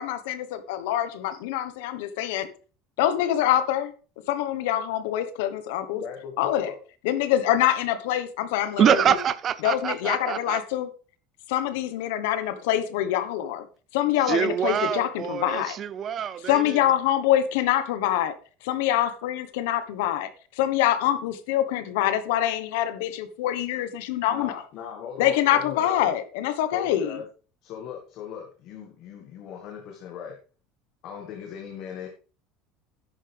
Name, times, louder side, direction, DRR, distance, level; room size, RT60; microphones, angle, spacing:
voice 1, 0.0-2.5 3.0-3.9 4.3-6.0 6.4-6.7 7.0-9.2 9.6-10.9 11.5-13.7 13.9-15.8 16.5-18.3 18.6-20.3 20.5-24.6 25.2-27.2, left 12 dB, 85° left, 1.3 m, -25 dB
voice 2, 5.9-6.8 24.3-26.1 26.7-27.3 27.6-30.4 31.0-32.1, left 7 dB, 50° left, 1.8 m, -39 dB
voice 3, 8.8-10.6 14.3-16.8, right 9 dB, 30° right, 0.6 m, -25 dB
11.0 x 8.8 x 3.5 m
cardioid pair, 155°, 0 cm